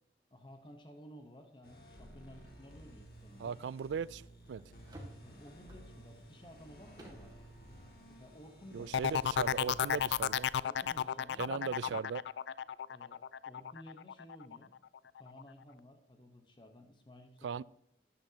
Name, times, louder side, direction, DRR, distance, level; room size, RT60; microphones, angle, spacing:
voice 1, 0.3-3.6 5.2-7.5 8.1-9.5 10.6-11.8 12.9-14.7 15.1-17.6, equal, 25° left, 1.0 m, -55 dB
sound 1, 1.6-10.2, right 1 dB, 55° left, 2.3 m, -55 dB
sound 2, 3.1-11.9, right 1 dB, 20° right, 2.1 m, -59 dB
voice 2, 3.4-4.6 8.7-10.5 11.4-12.2 17.4-17.6, right 6 dB, 85° right, 0.3 m, -38 dB
sound 3, 8.9-14.6 14.9-15.4, left 8 dB, 80° left, 0.3 m, -33 dB
12.0 x 9.9 x 2.8 m
head